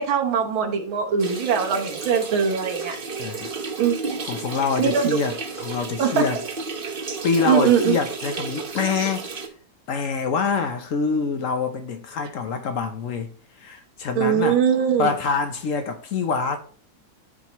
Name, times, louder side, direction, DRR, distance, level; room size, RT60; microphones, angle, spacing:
voice 1, 0.0-3.0 3.8-4.1 4.8-5.2 6.0-6.3 7.4-8.0 14.2-15.1, right 7 dB, 80° right, 1.8 m, -21 dB
sound 1, 1.2-9.5, right 4 dB, 35° right, 0.9 m, -32 dB
voice 2, 3.2-3.5 4.2-6.4 7.2-9.3 9.9-13.3 13.6-14.6 15.0-16.6, left 5 dB, 60° left, 0.8 m, -25 dB
13.0 x 4.5 x 3.0 m
omnidirectional pair, 2.2 m